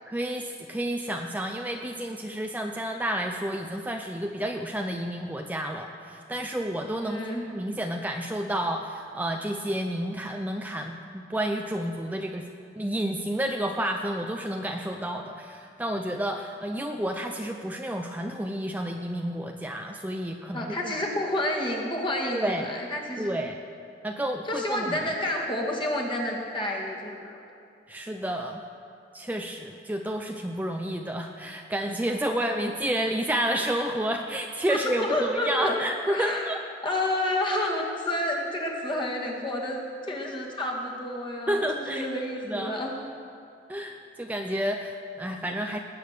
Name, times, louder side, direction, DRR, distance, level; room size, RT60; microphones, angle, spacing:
voice 1, 0.1-7.2 7.5-10.9 11.3-12.4 12.8-20.9 22.3-22.6 23.2-23.6 24.0-25.1 27.9-28.6 29.1-36.6 41.5-42.1 42.5-42.7 43.7-45.8, right 1 dB, 10° right, 3 dB, 0.5 m, -30 dB
voice 2, 6.9-7.4 20.5-23.3 24.5-27.4 34.7-35.8 36.1-36.5 36.8-42.9, left 1 dB, 25° left, -2 dB, 2.1 m, -29 dB
19.5 x 8.6 x 6.6 m, 2.6 s
head